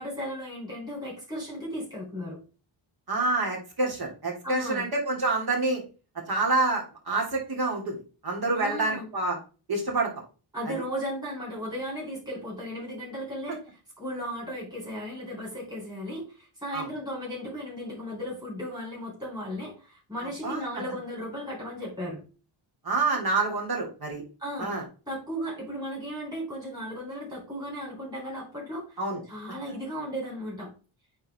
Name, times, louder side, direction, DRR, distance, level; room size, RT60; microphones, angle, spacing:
voice 1, 0.0-2.4 4.4-4.9 8.5-9.1 10.5-22.2 24.4-24.8 25.1-29.0 29.3-30.7, equal, 10° right, -5 dB, 3.7 m, -36 dB
voice 2, 3.1-5.8 6.3-8.0 8.2-9.4 9.7-10.1 10.6-10.7 16.7-16.9 20.4-20.6 22.8-24.2 24.6-24.8 29.0-29.2, right 3 dB, 45° right, 0 dB, 2.8 m, -27 dB
8.7 x 3.9 x 3.6 m, 0.34 s
wide cardioid pair, 140°, 49 cm